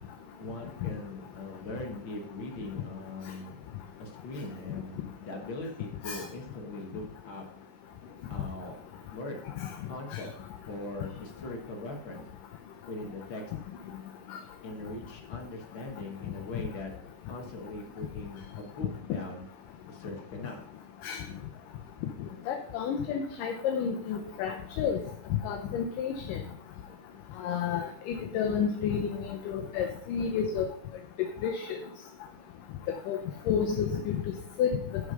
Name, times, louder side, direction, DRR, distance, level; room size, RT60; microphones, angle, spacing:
voice 1, 0.4-3.6 4.0-7.4 8.3-8.8 9.1-9.4 9.9-10.3 10.7-12.2 12.9-13.4 14.6-16.9 17.3-19.5 19.9-20.6, left 2 dB, 55° left, 2 dB, 1.4 m, -40 dB
voice 2, 22.5-25.0 25.4-26.4 27.4-30.7 31.4-31.8 33.1-33.2 33.5-34.2 34.6-34.7, left 7 dB, 80° left, 3 dB, 2.4 m, -30 dB
11.5 x 4.9 x 5.4 m, 0.64 s
omnidirectional pair, 3.8 m